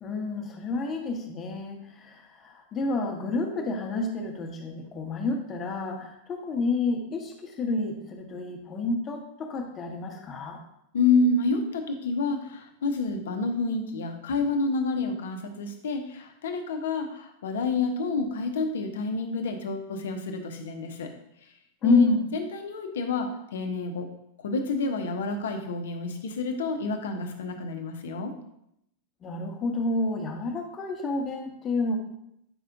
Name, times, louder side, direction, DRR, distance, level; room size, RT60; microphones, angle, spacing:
voice 1, 0.0-10.6 21.8-22.3 29.2-32.0, left 3 dB, 25° left, 3 dB, 1.2 m, -29 dB
voice 2, 10.9-21.1 21.8-24.1 24.4-28.3, left 3 dB, 60° left, 6 dB, 0.9 m, -29 dB
8.9 x 5.6 x 2.6 m, 0.78 s
figure-of-eight pair, 90°, 0 cm